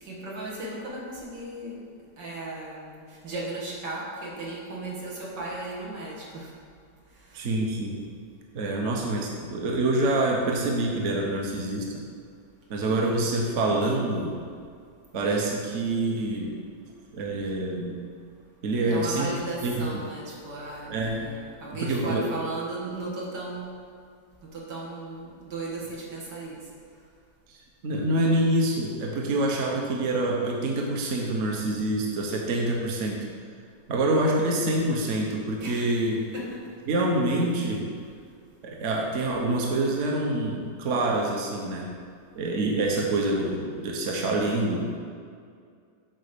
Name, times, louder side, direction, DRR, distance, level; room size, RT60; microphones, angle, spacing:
voice 1, 0.0-1.8 2.2-6.5 7.3-7.4 18.9-23.7 24.4-26.6 35.6-36.0 36.3-36.7, right 2 dB, 85° right, -4 dB, 2.3 m, -36 dB
voice 2, 7.3-8.0 8.5-12.0 12.7-14.4 15.1-16.6 17.1-18.0 18.6-19.3 19.6-19.9 20.9-21.2 21.8-22.3 27.5-33.3 33.9-36.2 36.9-37.9 38.6-41.9 42.3-45.0, right 2 dB, 50° right, -1 dB, 1.2 m, -26 dB
8.2 x 4.4 x 6.7 m, 2.2 s
omnidirectional pair, 1.8 m